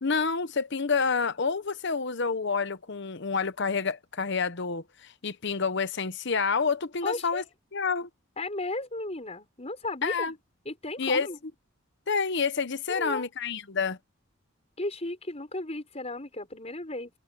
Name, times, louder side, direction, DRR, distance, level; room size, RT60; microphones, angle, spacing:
voice 1, 0.0-7.4 7.7-8.1 10.0-10.3 11.0-11.3 12.1-14.0, left 5 dB, 55° left, 0.9 m, -28 dB
voice 2, 7.0-7.5 8.4-10.3 10.6-11.4 12.9-13.3 14.8-17.1, left 2 dB, 30° left, 5.9 m, -35 dB
head